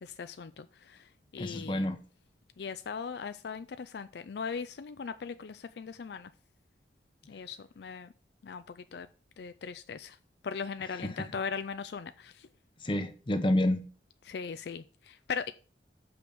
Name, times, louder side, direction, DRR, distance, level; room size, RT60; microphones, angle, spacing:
voice 1, 0.0-2.0 2.6-6.3 7.3-8.1 8.4-9.1 9.4-10.2 10.4-12.5 14.3-15.5, left 6 dB, 65° left, 0.4 m, -39 dB
voice 2, 1.4-2.0 11.0-11.3 12.8-13.9, left 1 dB, 25° left, 0.8 m, -29 dB
6.1 x 5.1 x 6.9 m
head